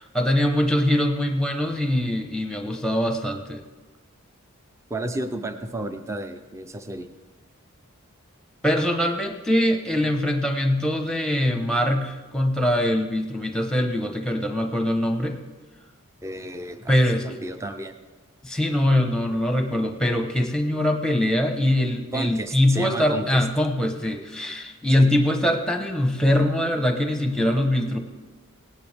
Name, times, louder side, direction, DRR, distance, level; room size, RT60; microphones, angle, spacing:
voice 1, 0.0-3.6 8.6-15.4 16.9-17.3 18.4-28.0, left 1 dB, 5° left, 5 dB, 0.9 m, -23 dB
voice 2, 4.9-7.1 16.2-17.0 17.2-18.0 22.1-23.4 25.0-25.1, right 2 dB, 15° right, 8 dB, 0.5 m, -32 dB
18.0 x 10.0 x 3.5 m, 1.2 s
head